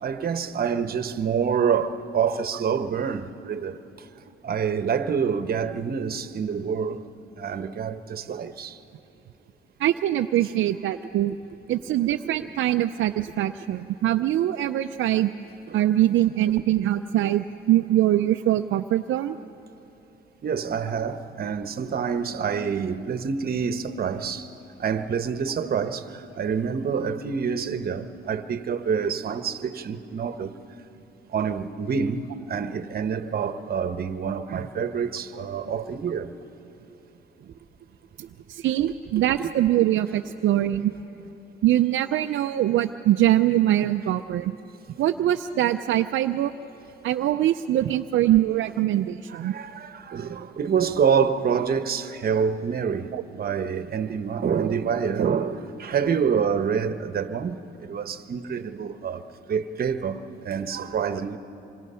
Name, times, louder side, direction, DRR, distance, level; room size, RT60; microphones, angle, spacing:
voice 1, 0.0-4.1 4.4-7.0 7.4-8.8 15.7-15.8 20.4-24.5 24.8-30.5 31.3-36.3 39.4-39.5 49.3-61.4, right 6 dB, 50° right, 1.1 m, -27 dB
voice 2, 9.8-11.4 11.7-15.3 15.7-19.4 38.5-40.9 41.6-44.5 45.0-46.5 47.0-49.5 53.1-53.2, right 13 dB, 75° right, 0.5 m, -23 dB
26.5 x 24.5 x 5.6 m
cardioid pair, 90°, 20 cm